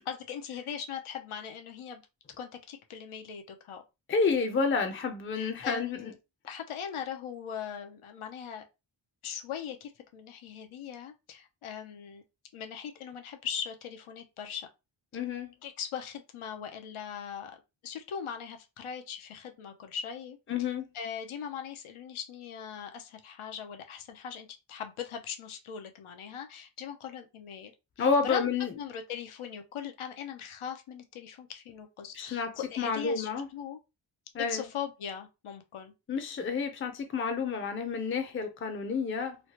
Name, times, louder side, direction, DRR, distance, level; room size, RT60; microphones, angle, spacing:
voice 1, 0.1-2.0 2.4-3.8 5.4-6.1 6.5-8.7 9.2-12.2 12.5-14.7 15.6-20.4 20.9-27.7 28.0-28.5 28.8-33.8 34.4-35.9, left 8 dB, 90° left, 0.6 m, -40 dB
voice 2, 4.1-6.1 15.1-15.5 20.5-20.9 28.0-28.7 32.1-33.5 34.3-34.7 36.1-39.4, left 5 dB, 25° left, 0.5 m, -30 dB
3.1 x 2.0 x 2.8 m
wide cardioid pair, 90°, 49 cm